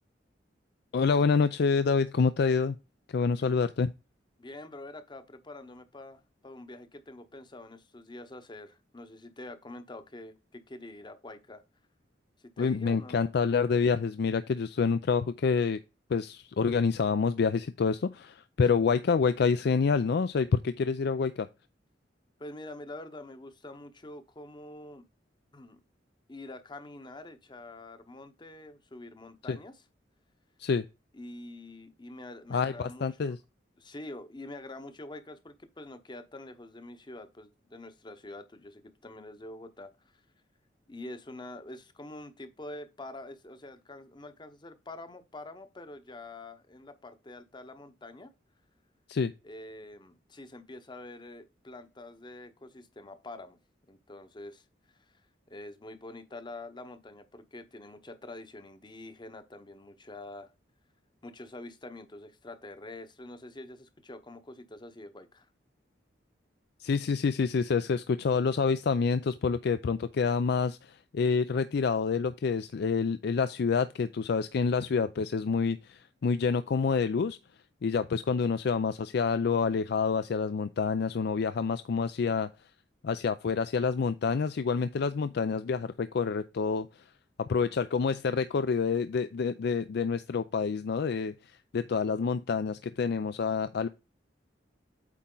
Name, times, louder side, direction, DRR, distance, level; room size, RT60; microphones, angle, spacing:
voice 1, 0.9-2.8 3.1-3.9 12.6-15.8 16.1-21.5 29.5-29.6 30.6-30.8 32.5-33.4 49.1-49.3 66.8-77.4 77.8-82.5 83.0-87.1 87.4-93.9, left 5 dB, 65° left, 0.4 m, -27 dB
voice 2, 4.4-11.6 12.6-13.3 22.4-25.0 25.5-25.8 26.3-29.7 31.1-33.4 33.8-40.2 40.9-48.3 49.4-53.6 53.9-55.2 55.5-60.5 61.2-65.5, left 2 dB, 25° left, 0.9 m, -46 dB
8.4 x 4.2 x 3.8 m
head